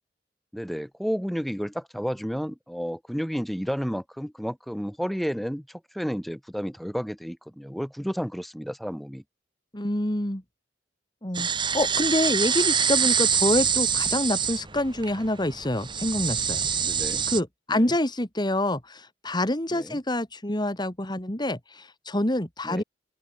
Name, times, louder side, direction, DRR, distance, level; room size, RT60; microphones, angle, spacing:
voice 1, 0.5-9.2 16.8-17.2 17.7-18.0 19.7-20.0 22.6-22.8, equal, ahead, 3.5 m, -31 dB
voice 2, 9.7-10.4 11.2-11.5 11.7-16.7 17.3-22.8, left 1 dB, 25° left, 3.0 m, -26 dB
sound 1, 11.3-17.4, right 7 dB, 25° right, 1.3 m, -25 dB
open air
head